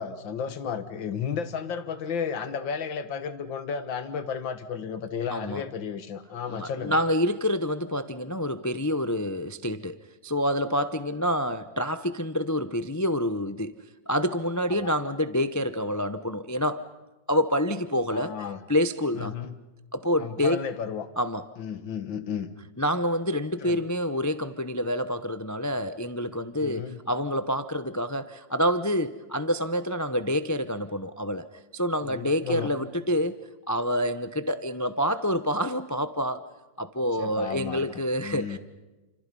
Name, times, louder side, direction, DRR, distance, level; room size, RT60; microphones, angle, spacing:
voice 1, 0.0-7.0 14.7-14.9 18.1-18.6 19.1-19.5 20.2-21.1 21.6-22.5 23.6-23.9 26.6-27.0 32.0-32.7 37.2-37.9 38.2-38.6, left 7 dB, 85° left, 11 dB, 2.2 m, -33 dB
voice 2, 5.3-5.6 6.5-10.0 10.2-13.7 14.1-16.8 17.3-18.3 18.7-19.3 19.9-20.6 21.2-21.4 22.8-31.5 31.7-33.3 33.7-36.4 36.8-38.6, equal, 25° left, 11 dB, 0.3 m, -27 dB
29.5 x 27.0 x 5.5 m, 1.1 s
omnidirectional pair, 2.0 m